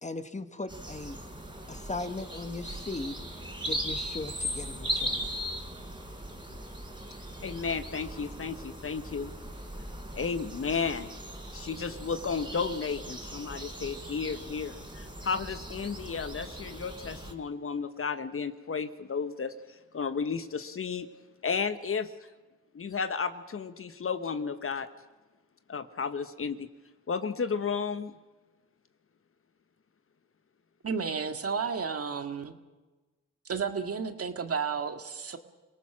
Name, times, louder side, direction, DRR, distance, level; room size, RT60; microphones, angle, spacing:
voice 1, 0.0-1.2 1.7-3.2 3.7-5.3, left 2 dB, 20° left, 10 dB, 1.5 m, -38 dB
sound 1, 0.7-17.3, equal, 15° right, 4.2 m, -39 dB
voice 2, 7.4-9.3 10.1-11.1 11.5-21.1 21.4-22.1 22.7-24.9 25.7-26.7 27.1-28.1, left 5 dB, 40° left, 11 dB, 1.3 m, -33 dB
voice 3, 30.8-32.6 33.5-35.4, right 5 dB, 40° right, 7 dB, 2.0 m, -32 dB
26.0 x 18.5 x 6.2 m, 1.2 s
supercardioid pair, 55°, 35 cm